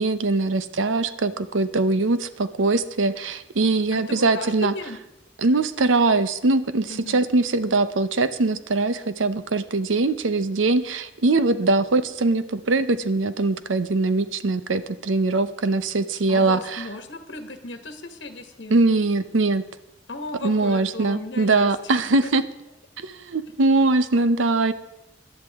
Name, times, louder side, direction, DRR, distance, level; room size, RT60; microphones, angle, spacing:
voice 1, 0.0-4.7 5.4-16.8 18.7-19.6 20.4-22.4 23.0-24.7, right 3 dB, 85° right, 13 dB, 0.7 m, -22 dB
voice 2, 3.9-5.0 6.9-7.2 16.3-18.9 20.1-22.0 22.2-22.3, left 2 dB, 65° left, 7 dB, 1.4 m, -36 dB
18.5 x 12.0 x 3.6 m, 0.88 s
head